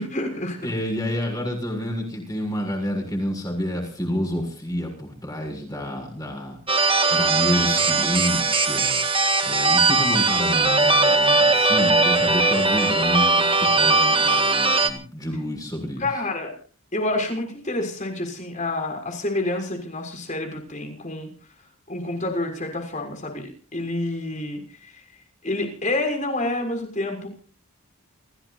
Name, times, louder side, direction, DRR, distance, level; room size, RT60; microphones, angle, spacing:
voice 1, 0.0-0.7 16.0-16.5 16.9-21.3 21.9-24.9 25.4-27.3, left 2 dB, 35° left, 4 dB, 6.5 m, -28 dB
voice 2, 0.6-9.0 9.4-16.1, equal, 15° left, 3 dB, 7.1 m, -29 dB
sound 1, 6.7-14.9, right 3 dB, 25° right, 1.7 m, -19 dB
29.5 x 18.0 x 2.7 m, 0.40 s
head